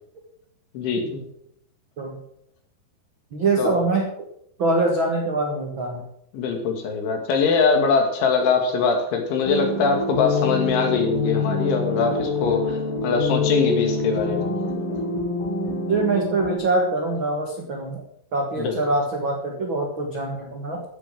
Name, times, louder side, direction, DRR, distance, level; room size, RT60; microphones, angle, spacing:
voice 1, 0.7-1.3 3.6-3.9 6.3-14.6 18.6-18.8, left 5 dB, 80° left, 3 dB, 4.7 m, -22 dB
voice 2, 3.3-4.3 4.6-6.1 15.9-18.0 18.3-20.8, right 2 dB, 85° right, 1 dB, 1.0 m, -24 dB
sound 1, 9.4-16.6, left 3 dB, 55° left, 6.1 m, -26 dB
15.0 x 8.2 x 6.3 m, 0.72 s
omnidirectional pair, 5.3 m